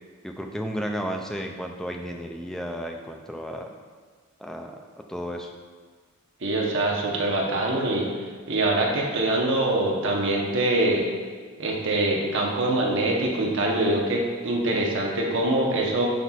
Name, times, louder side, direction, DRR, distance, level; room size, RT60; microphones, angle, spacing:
voice 1, 0.2-3.7 4.4-5.5, equal, ahead, 3 dB, 0.3 m, -33 dB
voice 2, 6.4-8.1 8.5-11.0 11.6-16.1, right 2 dB, 55° right, -1 dB, 0.9 m, -24 dB
9.8 x 4.2 x 2.4 m, 1.5 s
head